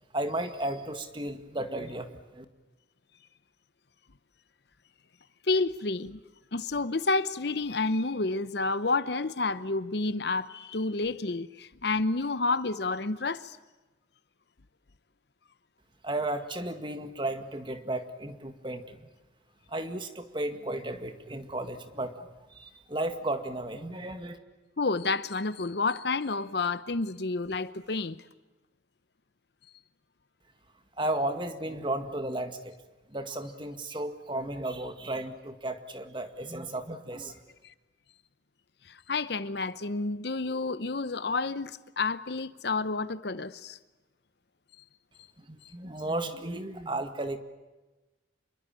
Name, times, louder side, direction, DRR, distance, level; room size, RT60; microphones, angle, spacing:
voice 1, 0.1-2.5 16.0-19.1 19.7-24.4 31.0-32.8 33.1-37.4 45.4-47.4, right 1 dB, 25° right, 1.9 m, -34 dB
voice 2, 5.5-6.2 6.5-13.6 24.8-28.2 39.1-43.8, left 3 dB, 55° left, 0.8 m, -30 dB
27.5 x 22.0 x 8.9 m
head